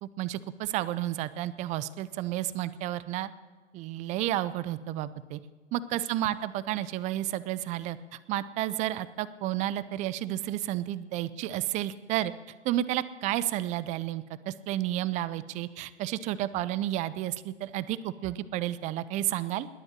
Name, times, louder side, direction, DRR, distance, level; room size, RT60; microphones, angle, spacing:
voice 1, 0.0-3.3 3.7-5.4 5.7-8.0 8.3-12.3 12.6-19.7, right 13 dB, 20° right, 17 dB, 0.5 m, -31 dB
20.5 x 7.9 x 7.4 m, 1.4 s
hypercardioid pair, 120°, 37 cm